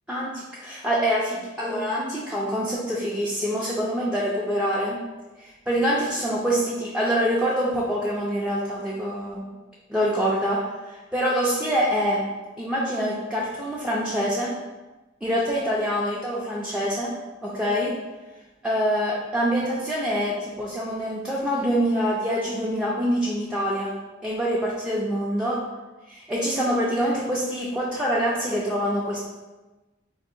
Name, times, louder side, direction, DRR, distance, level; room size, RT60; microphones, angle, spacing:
voice 1, 0.1-5.0 5.4-9.4 9.9-12.2 12.6-14.5 15.2-17.1 17.4-18.0 18.6-23.9 24.2-25.6 26.1-29.2, equal, 5° right, -6 dB, 0.4 m, -25 dB
4.0 x 2.7 x 2.5 m, 1.2 s
head